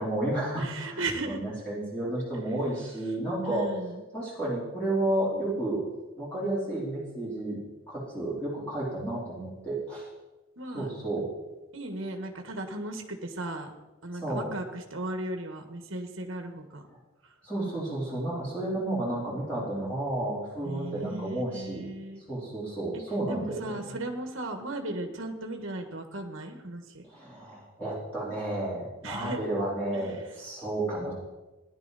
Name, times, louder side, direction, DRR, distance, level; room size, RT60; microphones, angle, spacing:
voice 1, 0.0-3.7 4.1-5.8 6.2-7.6 7.9-10.1 10.7-11.3 14.2-14.5 17.4-21.9 22.3-23.8 27.1-31.1, right 1 dB, 5° left, -8 dB, 3.6 m, -31 dB
voice 2, 0.6-1.4 3.4-4.0 10.6-10.9 11.7-13.7 14.0-16.9 17.2-17.3 20.6-22.2 22.9-23.0 23.3-27.0 29.0-29.4 29.9-30.3, right 2 dB, 65° right, 5 dB, 1.5 m, -36 dB
17.0 x 11.0 x 4.1 m, 1.1 s
head